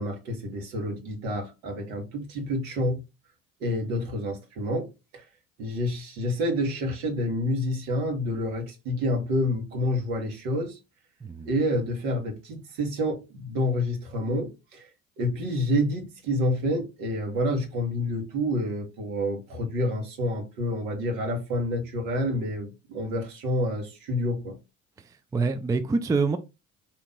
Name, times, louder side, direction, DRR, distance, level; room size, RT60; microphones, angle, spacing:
voice 1, 0.0-3.0 3.6-5.2 5.6-10.8 11.4-14.9 15.2-24.6, left 1 dB, 70° right, 1.5 m, -28 dB
voice 2, 25.3-26.4, right 4 dB, 10° right, 0.4 m, -25 dB
4.3 x 2.9 x 3.8 m
figure-of-eight pair, 55°, 41 cm